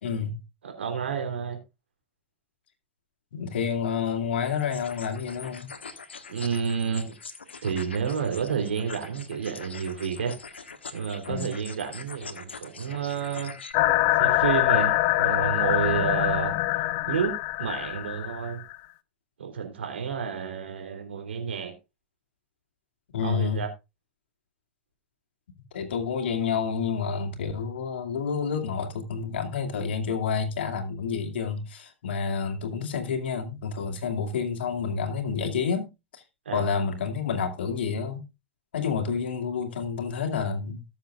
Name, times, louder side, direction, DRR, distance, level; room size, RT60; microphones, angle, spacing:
voice 1, 0.0-0.3 3.3-5.7 11.3-11.5 23.1-23.6 25.7-35.9 36.1-36.2 36.5-38.2 38.7-40.8, left 6 dB, 70° left, 2.4 m, -29 dB
voice 2, 0.6-1.6 6.3-7.1 7.6-13.5 14.2-16.5 17.0-18.6 19.4-21.7 23.2-23.7 36.4-36.7, right 7 dB, 80° right, 3.4 m, -30 dB
sound 1, 4.6-13.7, left 5 dB, 85° left, 1.4 m, -43 dB
sound 2, 13.7-18.8, left 17 dB, 50° left, 0.7 m, -24 dB
19.0 x 7.2 x 2.5 m
hypercardioid pair, 100°, 6 cm